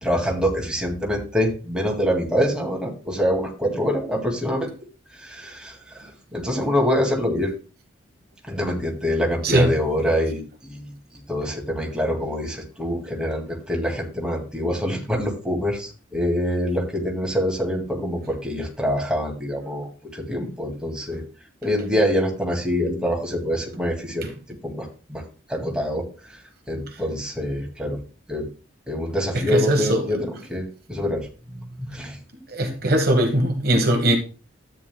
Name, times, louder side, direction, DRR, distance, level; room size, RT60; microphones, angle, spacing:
voice 1, 0.0-4.7 5.1-7.5 8.5-10.9 11.3-21.2 21.6-24.3 24.6-25.2 25.5-26.4 26.7-28.0 28.3-28.5 28.9-32.2, equal, 5° right, 2.1 m, -25 dB
voice 2, 29.5-30.0 32.5-34.2, right 1 dB, 50° right, 1.2 m, -19 dB
13.0 x 9.1 x 2.2 m
head